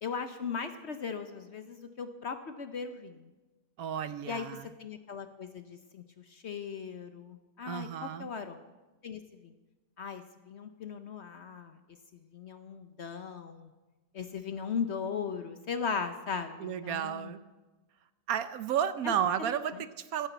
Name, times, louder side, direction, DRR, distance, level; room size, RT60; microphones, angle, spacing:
voice 1, 0.0-3.2 4.3-6.0 6.3-8.7 9.0-9.5 10.0-11.7 12.3-13.7 14.1-17.3 19.0-19.1, left 6 dB, 55° left, 8 dB, 0.9 m, -38 dB
voice 2, 3.8-4.7 7.7-8.3 16.6-17.4 18.3-20.3, right 9 dB, 70° right, 12 dB, 1.1 m, -32 dB
15.0 x 9.1 x 8.0 m, 1.2 s
omnidirectional pair, 1.7 m